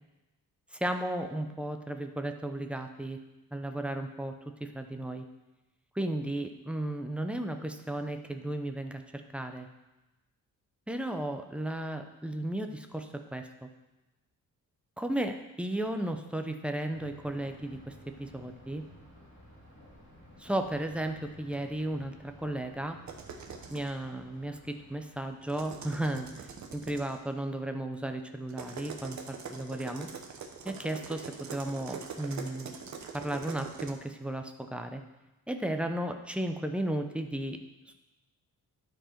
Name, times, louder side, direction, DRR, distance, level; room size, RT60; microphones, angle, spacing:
voice 1, 0.7-3.2 3.5-4.4 4.6-5.2 5.9-9.7 10.9-13.7 15.0-17.9 18.2-18.8 20.4-23.0 23.7-30.1 30.6-32.7 33.1-35.0 35.5-37.6 37.9-38.0, right 1 dB, 5° right, 5 dB, 0.5 m, -34 dB
Thunder, 16.9-25.7, left 1 dB, 35° left, 2.3 m, -55 dB
sound 1, 23.1-23.9 25.4-27.2 28.5-33.9, right 6 dB, 50° right, 0.9 m, -43 dB
12.0 x 4.6 x 4.4 m, 1.0 s
wide cardioid pair, 155°, 36 cm